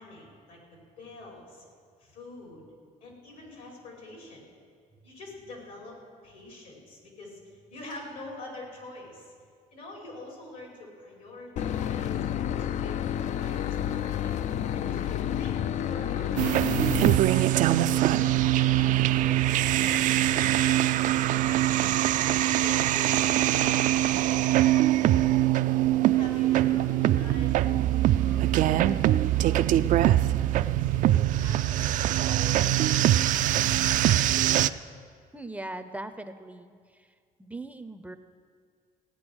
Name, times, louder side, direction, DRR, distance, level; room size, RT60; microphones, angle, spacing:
voice 1, 0.0-1.7 2.0-2.6 3.0-4.4 5.0-6.0 6.2-9.3 9.7-12.2 12.6-14.4 14.7-16.6 17.2-21.8 22.4-25.4 26.2-32.9, left 2 dB, 80° left, -1 dB, 4.7 m, -46 dB
Boat Water vehicle / Engine, 11.6-17.2, left 10 dB, 55° left, 0.4 m, -30 dB
sound 1, 16.4-34.7, right 13 dB, 60° right, 0.4 m, -23 dB
voice 2, 35.3-37.1 37.4-38.1, right 2 dB, 10° right, 10 dB, 0.5 m, -40 dB
17.0 x 9.3 x 6.2 m, 2.1 s
cardioid pair, 110°, 15 cm